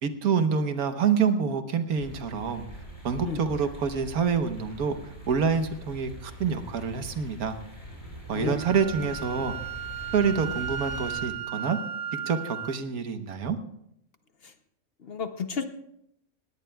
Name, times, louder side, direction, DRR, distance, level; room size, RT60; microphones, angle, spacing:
voice 1, 0.0-2.6 3.0-7.6 8.3-9.5 10.1-11.8 12.3-13.6, right 6 dB, 85° right, 8 dB, 1.5 m, -27 dB
sound 1, 1.9-11.3, equal, 30° left, 6.1 m, -43 dB
Wind instrument woodwind instrument, 8.6-12.7, right 8 dB, 65° right, 1.2 m, -35 dB
voice 2, 9.0-9.6 14.4-14.5 15.0-15.6, left 6 dB, 50° left, 8 dB, 0.8 m, -33 dB
20.0 x 17.0 x 2.3 m, 0.76 s
omnidirectional pair, 1.5 m